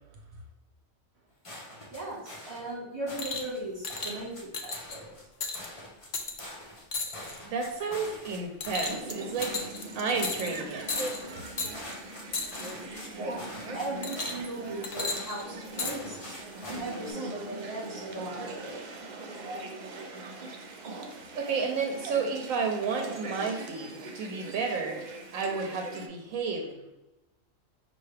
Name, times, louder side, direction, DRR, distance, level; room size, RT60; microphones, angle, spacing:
sound 1, 1.4-2.7 3.1-3.6 3.9-4.4 4.7-5.2 5.5-6.8 7.1-8.4 8.6-9.1 9.4-9.9 10.1-10.6 10.9-13.1 13.4-14.6 14.9-15.4 15.8-17.1, left 1 dB, 25° left, 0.9 m, -44 dB
voice 1, 1.9-5.1 13.2-13.5 13.7-16.5 16.7-18.7, right 2 dB, 25° right, -5 dB, 1.6 m, -38 dB
sound 2, 3.2-3.5 3.8-4.1 4.5-5.0 5.4-5.7 6.1-6.4 6.9-7.4 7.8-8.1 8.6-9.1 9.4-9.8 10.2-10.6 10.9-11.2 11.6-11.7 12.3-12.7 14.0-14.5 14.8-15.9 16.8-16.9, left 3 dB, 60° left, 0.4 m, -34 dB
voice 2, 7.5-10.9 21.4-25.0 25.3-26.9, right 4 dB, 80° right, 2 dB, 1.0 m, -32 dB
sound 3, 8.8-26.1, right 2 dB, 60° right, 0.4 m, -41 dB
5.5 x 2.6 x 3.2 m, 0.98 s
omnidirectional pair, 1.4 m